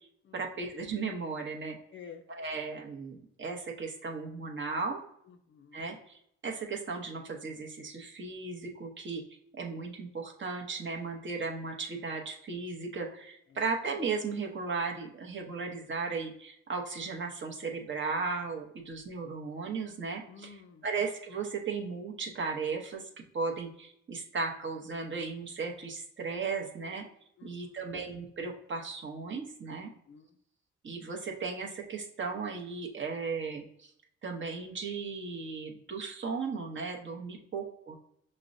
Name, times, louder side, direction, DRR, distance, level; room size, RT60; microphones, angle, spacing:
voice 1, 0.3-1.8 2.3-5.0 5.7-9.2 9.6-23.0 23.3-27.0 27.4-29.9 30.8-33.9 34.2-38.0, right 4 dB, 40° right, 1 dB, 0.8 m, -36 dB
voice 2, 1.9-2.2 5.3-5.8 20.3-20.9 27.4-27.8 29.8-30.4 37.3-37.5, left 6 dB, 40° left, 6 dB, 0.4 m, -51 dB
5.8 x 2.1 x 2.5 m, 0.71 s
cardioid pair, 90°, 30 cm